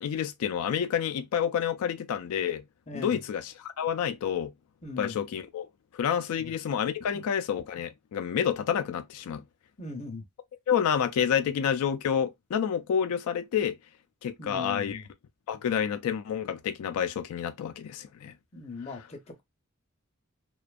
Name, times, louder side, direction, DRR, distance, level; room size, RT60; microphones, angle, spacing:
voice 1, 0.0-2.6 2.9-4.5 5.0-5.7 5.9-9.4 10.7-13.8 14.2-15.0 15.5-18.3, left 8 dB, 85° left, 0.3 m, -29 dB
voice 2, 2.9-3.2 4.8-5.2 6.3-6.5 7.1-7.2 9.8-10.2 14.4-15.1 18.5-19.4, left 3 dB, 30° left, 0.5 m, -40 dB
2.5 x 2.2 x 2.3 m
head